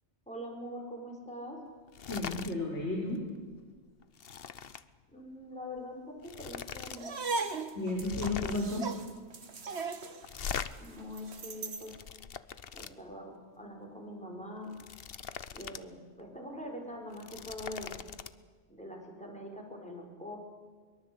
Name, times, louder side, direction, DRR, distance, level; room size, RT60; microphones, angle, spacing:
voice 1, 0.3-1.6 5.1-7.2 10.8-12.0 12.7-14.7 15.5-18.0 18.7-20.4, left 1 dB, 5° left, 0 dB, 6.2 m, -43 dB
sound 1, 1.9-2.5 2.9-3.2 3.5-4.9 5.8-5.9 6.2-7.0 7.3-7.4 7.9-8.8 10.2-10.7 11.5-12.9 14.6-15.8 16.2-16.3 17.0-18.3, left 7 dB, 55° left, 1.0 m, -41 dB
voice 2, 2.1-3.2 7.8-8.9, left 2 dB, 75° left, 0 dB, 3.8 m, -33 dB
sound 2, 6.9-11.9, right 4 dB, 65° right, 1.7 m, -38 dB
23.5 x 22.5 x 8.4 m, 1.5 s
omnidirectional pair, 1.2 m